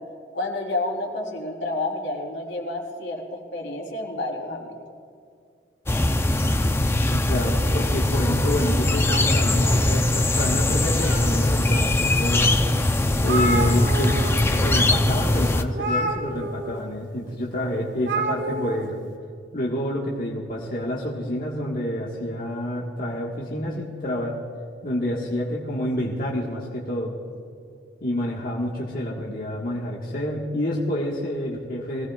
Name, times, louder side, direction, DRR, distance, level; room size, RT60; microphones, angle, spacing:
voice 1, 0.3-4.8, left 2 dB, 85° left, -1 dB, 3.3 m, -29 dB
sound 1, 5.9-15.6, left 1 dB, 15° left, 0.5 m, -21 dB
voice 2, 7.1-12.6 13.2-14.2 14.5-19.0 19.5-24.3 24.8-27.1 28.0-32.1, left 1 dB, 50° left, -4 dB, 1.5 m, -28 dB
sound 2, 9.1-10.3 10.7-11.6 12.2-12.3 12.7-12.8 13.0-14.3 14.6-14.8 15.7-16.8 18.0-18.8, right 1 dB, 75° right, 1.7 m, -29 dB
23.0 x 17.0 x 2.4 m, 2.3 s
head